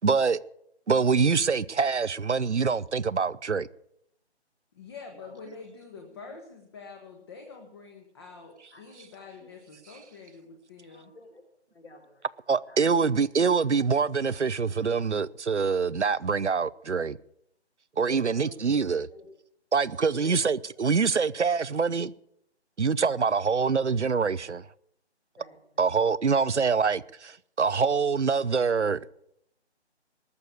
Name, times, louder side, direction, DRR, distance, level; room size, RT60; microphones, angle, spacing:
voice 1, 0.0-0.4 0.9-3.7 12.5-17.2 18.0-19.1 19.7-22.1 22.8-24.6 25.8-29.0, right 5 dB, 85° right, 0.8 m, -25 dB
voice 2, 4.7-11.1, left 4 dB, 20° left, 1.5 m, -46 dB
voice 3, 10.9-11.4 11.7-12.2 12.7-12.8 18.1-18.6 19.1-19.3 20.0-20.4 25.4-25.6, left 2 dB, 65° left, 6.2 m, -49 dB
20.0 x 6.9 x 8.3 m
figure-of-eight pair, 155°, 34 cm